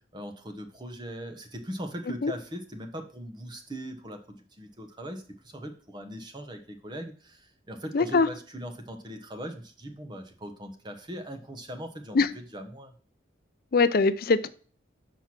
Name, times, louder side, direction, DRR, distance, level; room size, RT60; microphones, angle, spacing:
voice 1, 0.0-12.9, equal, 25° right, 0.9 m, -40 dB
voice 2, 7.9-8.3 12.1-12.3 13.7-14.5, left 4 dB, 50° left, 0.5 m, -22 dB
6.1 x 4.5 x 5.9 m
head